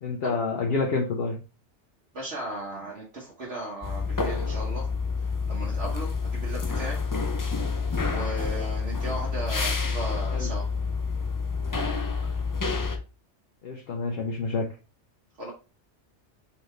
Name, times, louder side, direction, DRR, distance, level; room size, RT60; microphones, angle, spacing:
voice 1, 0.0-1.4 10.3-10.5 13.6-14.7, left 4 dB, 60° left, 1 dB, 0.9 m, -28 dB
voice 2, 2.1-4.9 5.5-7.1 8.1-10.7 15.4-15.5, right 1 dB, 65° right, -5 dB, 1.4 m, -36 dB
sound 1, 3.8-13.0, left 4 dB, 30° left, 0.3 m, -28 dB
4.1 x 3.8 x 3.2 m, 0.32 s
omnidirectional pair, 1.2 m